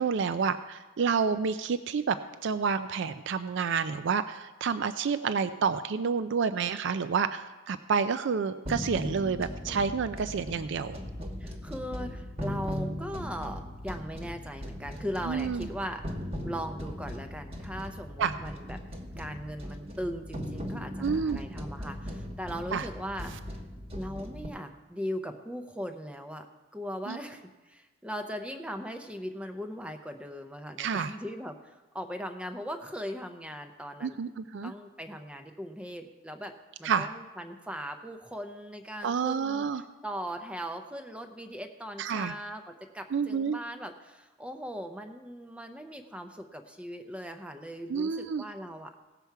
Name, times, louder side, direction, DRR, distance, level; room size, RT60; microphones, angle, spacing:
voice 1, 0.0-2.2 2.4-11.0 15.3-15.7 18.2-18.3 21.0-21.4 22.7-22.9 27.1-27.2 30.8-31.1 34.0-34.7 36.8-37.1 39.0-39.8 42.0-42.3 43.1-43.6 47.9-48.4, right 6 dB, 60° right, 11 dB, 0.4 m, -29 dB
sound 1, 8.7-24.5, equal, 30° right, 1.1 m, -38 dB
voice 2, 11.4-16.1 16.4-18.8 19.2-23.4 23.9-26.5 26.7-34.2 34.6-36.5 36.8-39.7 40.0-48.9, equal, 5° right, 6 dB, 0.5 m, -39 dB
17.0 x 6.9 x 4.6 m, 1.2 s
head